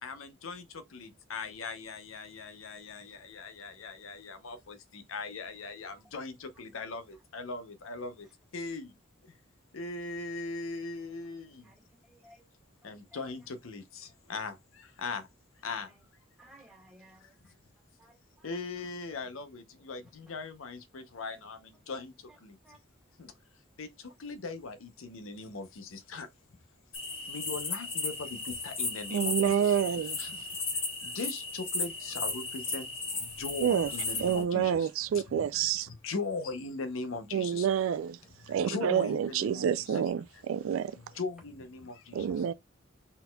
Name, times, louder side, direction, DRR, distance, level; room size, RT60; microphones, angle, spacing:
voice 1, 0.0-8.3 8.5-8.9 9.2-9.3 9.7-11.7 12.8-15.3 15.6-15.9 17.2-17.3 18.4-22.6 23.2-23.3 23.8-26.3 27.2-30.4 30.7-37.7 38.2-40.4 40.9-42.3, left 3 dB, 85° left, 0.7 m, -40 dB
voice 2, 12.1-12.5 12.8-13.2 15.8-16.0 16.4-17.5 18.0-18.6 22.6-22.8, right 1 dB, ahead, 2.0 m, -58 dB
sound 1, 26.9-34.4, left 3 dB, 30° left, 1.2 m, -35 dB
voice 3, 29.1-30.2 33.6-33.9 34.2-35.9 37.3-38.2 38.5-40.2 40.5-40.9 42.1-42.5, right 8 dB, 85° right, 0.3 m, -28 dB
4.2 x 4.0 x 2.2 m
head